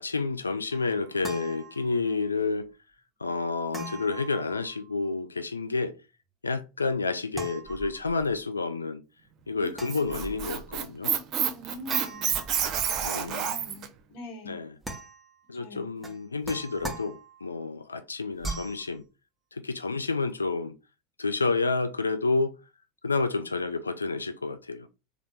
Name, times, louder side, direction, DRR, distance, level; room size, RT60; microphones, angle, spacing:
voice 1, 0.0-2.7 3.2-5.9 6.4-9.0 9.5-11.1 13.0-13.5 14.5-14.7 15.5-19.0 19.5-20.7 21.2-22.6 23.0-24.9, left 3 dB, 90° left, 0.3 m, -29 dB
sound 1, 0.7-2.3 3.7-5.1 7.3-8.4 9.7-10.8 11.9-13.3 14.8-15.5 16.0-17.6 18.4-18.9, right 2 dB, 10° right, 1.0 m, -41 dB
Squeak, 9.6-13.9, right 8 dB, 45° right, 0.7 m, -29 dB
voice 2, 11.5-12.4 12.7-12.8 13.2-14.6 15.5-15.9, left 1 dB, 60° left, 1.2 m, -43 dB
3.6 x 2.3 x 4.3 m
figure-of-eight pair, 80°, 0 cm